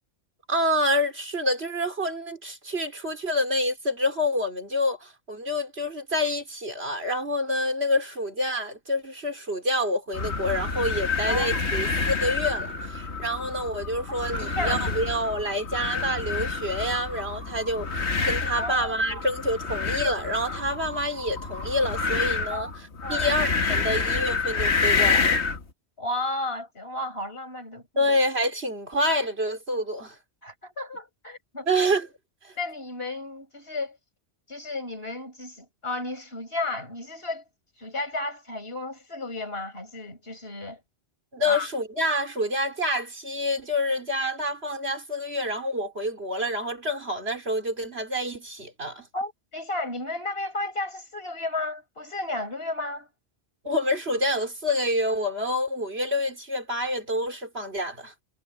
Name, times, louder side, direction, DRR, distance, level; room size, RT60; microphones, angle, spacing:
voice 1, 0.5-25.4 28.0-30.1 31.7-32.1 32.4-32.5 41.3-49.1 53.6-58.1, left 1 dB, 70° right, 4.3 m, -27 dB
sound 1, 10.1-25.6, left 4 dB, 75° left, 2.0 m, -28 dB
voice 2, 11.3-11.6 14.2-14.8 18.6-19.3 22.5-22.7 23.0-23.3 26.0-28.1 30.4-31.7 32.6-34.0 34.5-37.4 37.8-40.8 41.4-41.7 49.1-53.1, left 2 dB, 60° left, 6.4 m, -33 dB
omnidirectional pair, 1.1 m